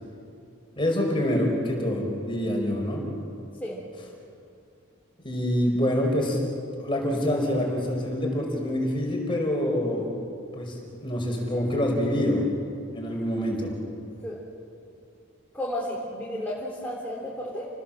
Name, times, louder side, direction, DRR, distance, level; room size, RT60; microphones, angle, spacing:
voice 1, 0.8-3.0 5.2-6.4 6.8-10.1 10.5-12.4 12.9-13.7, left 1 dB, 25° left, 0 dB, 5.4 m, -26 dB
voice 2, 15.5-17.7, left 1 dB, 5° left, -5 dB, 3.7 m, -32 dB
30.0 x 19.5 x 7.6 m, 2.5 s
head